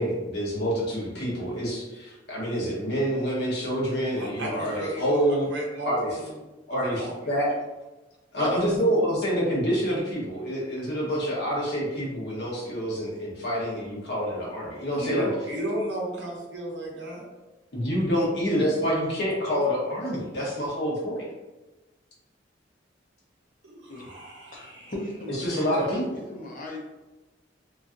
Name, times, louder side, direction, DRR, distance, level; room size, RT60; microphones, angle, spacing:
voice 1, 0.0-5.5 5.8-6.2 6.7-7.5 8.3-15.3 17.7-21.3 25.3-26.2, equal, 60° left, -5 dB, 1.1 m, -27 dB
voice 2, 4.2-5.9 6.2-6.4 6.7-7.2 8.3-8.8 14.9-17.3 23.6-24.9, right 1 dB, 70° right, -2 dB, 0.8 m, -34 dB
voice 3, 24.5-26.0 26.3-26.8, left 1 dB, 45° left, -1 dB, 0.6 m, -37 dB
3.0 x 2.7 x 2.4 m, 1.1 s
head